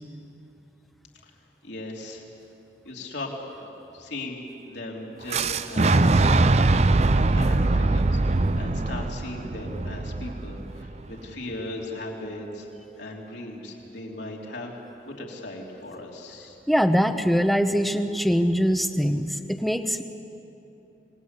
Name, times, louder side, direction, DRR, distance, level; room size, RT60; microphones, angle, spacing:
voice 1, 1.6-2.2 2.8-3.7 3.9-6.1 7.3-12.7 13.0-14.8 15.1-16.6, left 1 dB, 70° left, -1 dB, 3.4 m, -37 dB
Boom, 5.3-11.2, right 2 dB, 35° right, 0.5 m, -22 dB
voice 2, 16.7-20.0, equal, ahead, 8 dB, 0.9 m, -23 dB
26.5 x 20.0 x 8.3 m, 2.9 s
head